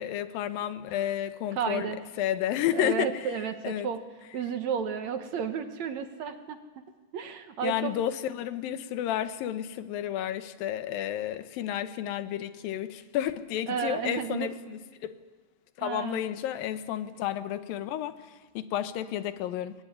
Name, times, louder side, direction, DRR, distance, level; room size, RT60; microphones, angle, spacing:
voice 1, 0.0-3.9 7.6-15.1 15.8-19.8, left 11 dB, 80° left, 12 dB, 2.7 m, -31 dB
voice 2, 1.6-2.0 2.7-4.0 4.3-6.6 7.1-7.9 13.7-14.5 15.8-16.2, right 7 dB, 65° right, 8 dB, 2.1 m, -32 dB
24.5 x 20.0 x 9.6 m, 1.4 s
omnidirectional pair, 4.1 m